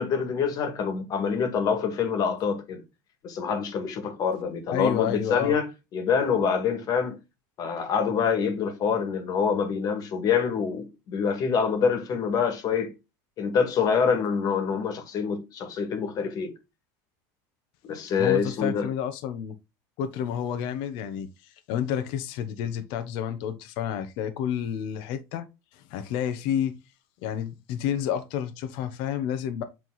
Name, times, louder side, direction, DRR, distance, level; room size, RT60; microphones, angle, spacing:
voice 1, 0.0-2.8 3.2-5.7 5.9-7.2 7.6-12.9 13.4-16.5 17.8-18.9, left 6 dB, 45° left, 2.0 m, -26 dB
voice 2, 4.7-5.5 18.2-19.5 20.0-25.4 25.7-26.8 27.2-29.6, left 9 dB, 65° left, 1.1 m, -30 dB
7.7 x 3.7 x 4.0 m
supercardioid pair, 125°, 9 cm